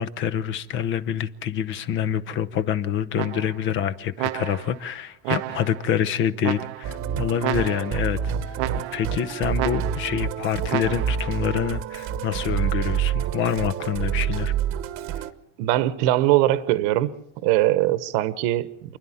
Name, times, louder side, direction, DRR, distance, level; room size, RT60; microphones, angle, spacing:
voice 1, 0.0-8.2 8.5-14.5, left 9 dB, 35° left, 0.9 m, -26 dB
sound 1, 3.2-3.7 4.2-4.8 5.2-5.9 6.4-7.0 7.4-8.1 8.6-9.2 9.6-10.2 10.7-11.3, right 19 dB, 85° right, 0.8 m, -31 dB
Musical instrument, 6.8-15.3, right 9 dB, 40° right, 1.1 m, -28 dB
voice 2, 15.6-17.1 17.4-19.0, right 15 dB, 65° right, 1.2 m, -21 dB
28.5 x 11.0 x 8.7 m
cardioid pair, 160°, 33 cm